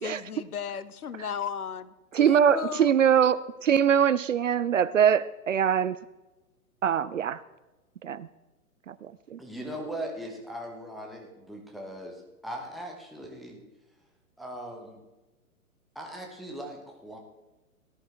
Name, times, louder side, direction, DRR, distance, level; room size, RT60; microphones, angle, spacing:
voice 1, 0.0-2.9, left 7 dB, 70° left, 15 dB, 0.8 m, -35 dB
voice 2, 2.1-6.0 6.8-7.4 8.0-8.3 8.9-9.4, right 8 dB, 55° right, 17 dB, 0.5 m, -23 dB
voice 3, 9.4-13.6 14.4-15.0 15.9-17.2, right 1 dB, ahead, 1 dB, 1.1 m, -39 dB
18.0 x 11.0 x 3.4 m, 1.1 s
figure-of-eight pair, 120°, 46 cm